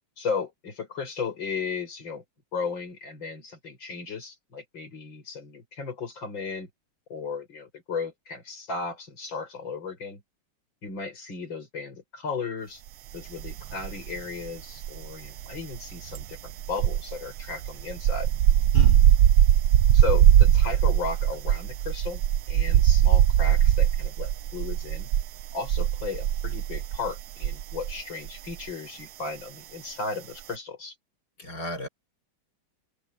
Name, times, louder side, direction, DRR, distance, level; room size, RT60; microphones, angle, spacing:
voice 1, 0.2-2.2 2.5-6.7 7.1-10.2 10.8-12.8 13.1-18.3 19.9-22.2 22.5-25.1 25.5-30.9, left 4 dB, 65° left, 6.5 m, -35 dB
sound 1, 13.4-14.2 14.5-28.0 28.3-28.5, right 11 dB, 70° right, 1.3 m, -21 dB
voice 2, 18.7-19.1 31.4-31.9, left 1 dB, 50° left, 6.0 m, -33 dB
omnidirectional pair, 2.2 m